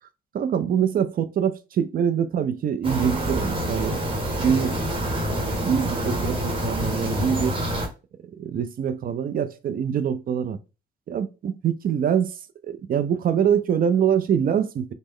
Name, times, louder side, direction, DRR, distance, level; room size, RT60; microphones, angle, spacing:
voice 1, 0.3-4.0 4.4-5.1 5.6-7.5 8.3-10.6 11.1-12.4 12.7-14.9, right 8 dB, 45° right, 0.4 m, -24 dB
sound 1, 2.8-7.9, equal, 25° right, 1.0 m, -26 dB
3.1 x 2.0 x 3.6 m
cardioid pair, 90°, 20 cm